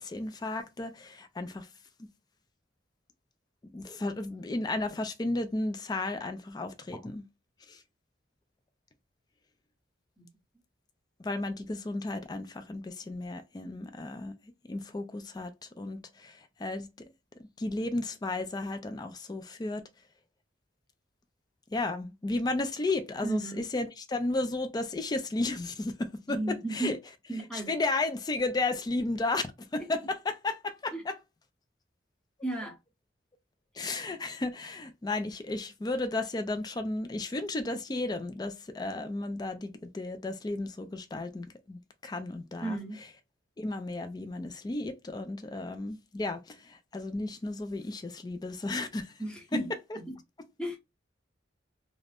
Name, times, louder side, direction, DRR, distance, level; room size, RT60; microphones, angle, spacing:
voice 1, 0.0-1.7 3.7-7.2 7.7-7.8 11.2-14.3 14.7-16.9 17.6-19.8 21.7-27.0 27.5-31.2 33.8-42.8 43.6-49.1 49.5-49.6, left 2 dB, 20° left, 0.3 m, -33 dB
voice 2, 23.2-23.6 26.3-26.9 27.3-27.7 29.8-29.9 30.9-31.0 32.4-32.8 42.6-43.0 49.2-49.7 50.1-50.2 50.6-50.8, right 2 dB, 5° left, 0.9 m, -34 dB
2.5 x 2.1 x 3.3 m
head